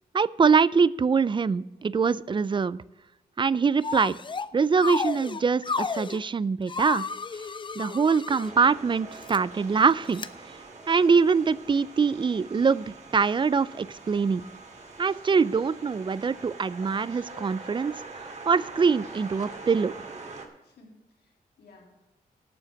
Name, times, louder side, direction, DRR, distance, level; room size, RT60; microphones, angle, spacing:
voice 1, 0.1-2.8 3.4-4.2 4.5-7.0 7.8-10.3 10.9-12.9 13.1-14.4 15.0-17.9 18.5-19.9, right 5 dB, 30° right, 19 dB, 0.4 m, -23 dB
sound 1, 3.8-4.5 4.8-6.2 6.7-8.5 9.1-9.4 10.1-10.3, left 4 dB, 30° left, 0.5 m, -32 dB
sound 2, 8.4-20.5, right 3 dB, 45° right, 2.1 m, -44 dB
voice 2, 20.6-22.1, left 2 dB, 90° left, -1 dB, 3.2 m, -56 dB
11.5 x 7.3 x 5.9 m, 1.0 s
cardioid pair, 75°, 16 cm